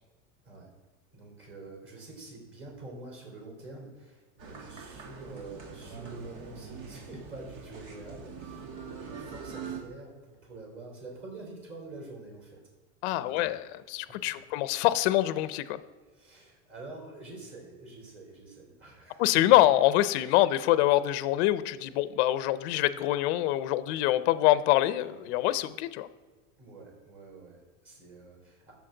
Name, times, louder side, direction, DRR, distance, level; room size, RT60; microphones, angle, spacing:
voice 1, 1.1-12.6 13.1-13.5 14.1-14.2 16.1-19.4 25.0-25.5 26.6-28.7, right 2 dB, 30° right, -2 dB, 3.6 m, -47 dB
sound 1, 4.4-9.8, right 5 dB, 75° right, 2.1 m, -43 dB
voice 2, 13.0-15.8 19.2-26.1, left 15 dB, 50° left, 14 dB, 0.5 m, -25 dB
13.0 x 7.2 x 3.9 m, 1.4 s
supercardioid pair, 165°, 44 cm